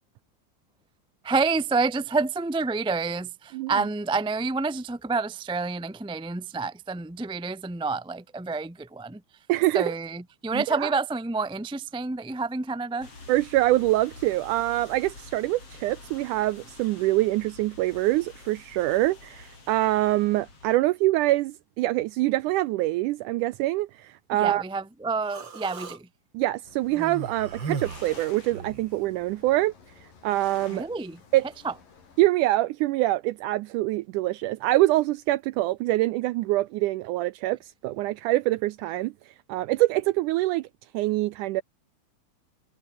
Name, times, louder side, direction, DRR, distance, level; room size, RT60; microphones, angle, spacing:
voice 1, 1.2-9.2 9.7-13.1 24.3-26.1 30.7-31.2 31.6-31.7, right 4 dB, 5° right, 0.4 m, -28 dB
voice 2, 9.5-9.9 10.5-10.9 13.3-24.6 26.3-29.7 30.2-30.9 31.3-31.5 32.2-39.1 39.5-40.7 40.9-41.6, right 17 dB, 80° right, 1.9 m, -25 dB
sound 1, 13.0-20.8, left 3 dB, 40° left, 6.7 m, -48 dB
Human voice, 25.2-26.0 26.9-28.9, right 5 dB, 35° right, 2.9 m, -36 dB
sound 2, 26.6-32.3, left 5 dB, 70° left, 6.5 m, -51 dB
omnidirectional pair, 4.1 m